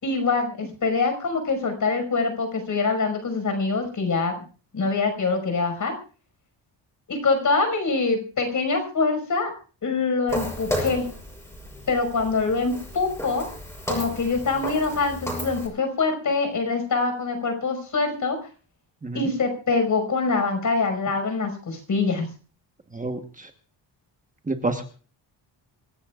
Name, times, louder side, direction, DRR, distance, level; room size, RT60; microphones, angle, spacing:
voice 1, 0.0-4.4 4.7-5.9 7.1-9.5 9.8-11.1 11.9-13.5 13.9-18.4 19.1-22.3, left 4 dB, 45° left, 6 dB, 5.7 m, -24 dB
Walk footsteps, 10.3-15.7, equal, 5° left, 6.6 m, -33 dB
voice 2, 22.9-23.5 24.5-24.8, right 2 dB, 15° right, 5 dB, 1.3 m, -29 dB
26.0 x 17.0 x 2.5 m, 0.38 s
wide cardioid pair, 180°, 44 cm